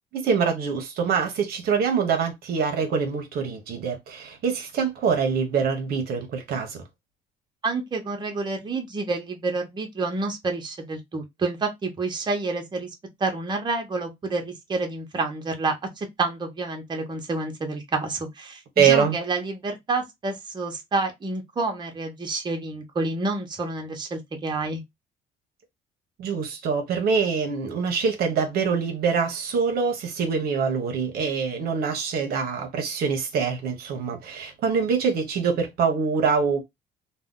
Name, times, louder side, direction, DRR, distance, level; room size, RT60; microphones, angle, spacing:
voice 1, 0.1-6.8 18.8-19.2 26.2-36.6, right 6 dB, 65° right, 0.7 m, -24 dB
voice 2, 7.6-12.9 13.2-24.8, right 3 dB, 25° right, 0.8 m, -29 dB
2.6 x 2.1 x 3.6 m
cardioid pair, 110°, 17 cm